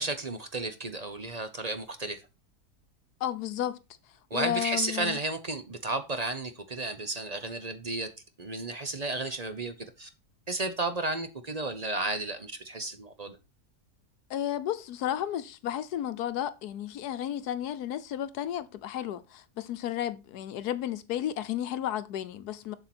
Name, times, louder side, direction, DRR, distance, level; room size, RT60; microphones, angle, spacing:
voice 1, 0.0-2.2 4.3-8.1 8.4-10.1 10.5-13.4, right 2 dB, 35° right, 0.7 m, -33 dB
voice 2, 3.2-3.8 4.3-5.2 14.3-22.7, left 11 dB, 75° left, 1.3 m, -33 dB
7.4 x 6.8 x 4.4 m
omnidirectional pair, 1.7 m